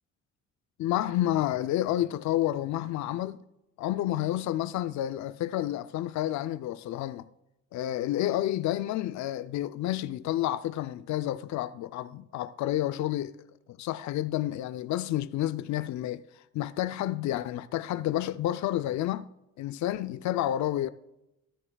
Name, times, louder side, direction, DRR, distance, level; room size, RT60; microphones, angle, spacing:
voice 1, 0.8-3.4 3.8-7.3 7.7-13.3 13.7-16.3 16.5-19.3 19.6-20.9, left 13 dB, 70° left, 0.5 m, -30 dB
13.5 x 12.0 x 2.3 m
cardioid pair, 90°, 30 cm